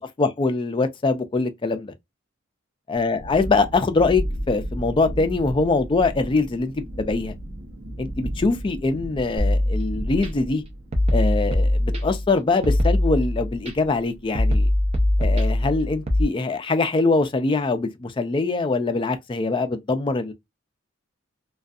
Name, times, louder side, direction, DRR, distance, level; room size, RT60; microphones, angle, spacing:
voice 1, 0.2-1.9 2.9-7.3 8.0-10.6 11.1-14.7 15.2-20.3, left 3 dB, 25° left, 0.3 m, -23 dB
Thunderstorm, 2.9-14.5, equal, 85° right, 0.8 m, -35 dB
sound 1, 9.4-10.3 10.9-12.3 12.6-13.7 14.4-16.2, left 1 dB, 30° right, 0.5 m, -21 dB
2.6 x 2.3 x 2.3 m
head